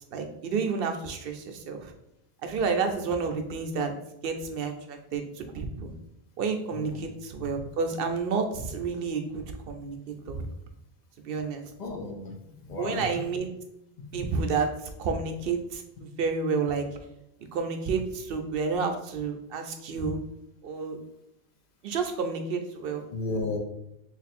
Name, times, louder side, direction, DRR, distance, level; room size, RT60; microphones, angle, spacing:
voice 1, 0.1-1.9 2.4-3.9 4.2-5.9 6.4-10.0 10.3-10.4 11.2-11.6 12.8-13.5 14.1-14.7 15.0-16.9 17.5-20.2 20.6-21.0 21.8-23.0, right 5 dB, 65° right, 5 dB, 0.7 m, -30 dB
voice 2, 11.8-12.3 12.6-13.2 14.0-14.3 23.1-23.6, left 3 dB, 50° left, 3 dB, 0.6 m, -34 dB
3.0 x 2.5 x 4.2 m, 0.82 s
omnidirectional pair, 1.1 m